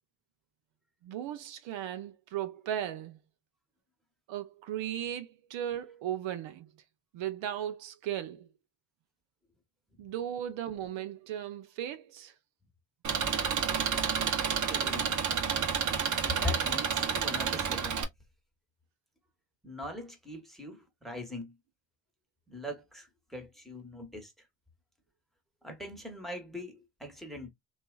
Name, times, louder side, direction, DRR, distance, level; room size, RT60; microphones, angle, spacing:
voice 1, 1.0-3.2 4.3-6.7 7.1-8.5 10.0-12.3, right 11 dB, 70° right, 0.6 m, -36 dB
Engine, 13.0-18.0, right 6 dB, 40° right, 0.8 m, -30 dB
voice 2, 14.5-15.2 16.3-18.0 19.6-21.6 22.5-24.3 25.6-27.5, left 1 dB, ahead, 1.1 m, -41 dB
2.8 x 2.3 x 2.2 m
supercardioid pair, 70°, 47 cm